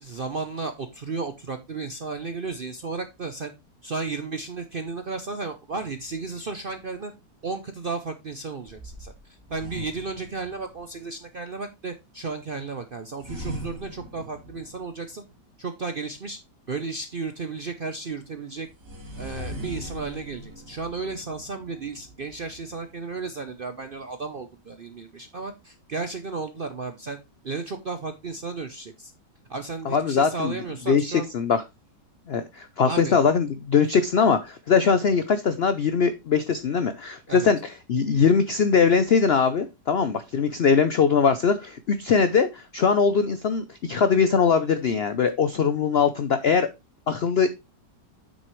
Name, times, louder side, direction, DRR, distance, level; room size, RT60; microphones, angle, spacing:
voice 1, 0.0-3.5 3.8-7.1 7.4-15.2 15.6-16.4 16.7-18.7 19.2-27.2 27.4-29.1 29.5-31.3 32.8-33.2 33.9-34.0 37.3-37.5, right 4 dB, 55° right, 7 dB, 0.6 m, -34 dB
sound 1, 5.7-6.7 8.6-11.0 13.2-15.3 18.6-23.3, equal, 75° right, 2.8 m, -41 dB
voice 2, 29.9-30.5 30.9-31.6 32.3-37.6 37.9-46.7 47.1-47.6, left 6 dB, 75° left, 11 dB, 0.5 m, -21 dB
8.2 x 6.4 x 3.1 m, 0.23 s
omnidirectional pair, 1.9 m